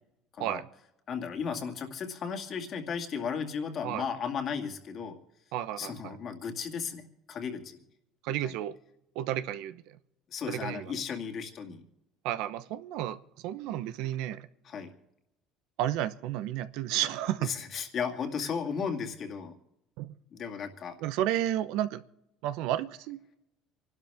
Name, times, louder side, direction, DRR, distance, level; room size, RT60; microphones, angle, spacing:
voice 1, 1.1-5.2 5.8-7.8 8.3-8.5 10.3-11.8 14.7-14.9 17.4-19.5 20.3-21.0, left 6 dB, 40° left, 4 dB, 2.2 m, -35 dB
voice 2, 5.5-6.2 8.2-8.8 9.1-10.0 10.5-11.0 12.2-13.2 13.4-14.5 15.8-17.5 20.0-20.2 21.0-22.0 22.4-23.2, right 12 dB, 70° right, 13 dB, 0.9 m, -32 dB
27.0 x 12.0 x 3.6 m, 0.86 s
cardioid pair, 150°, 0 cm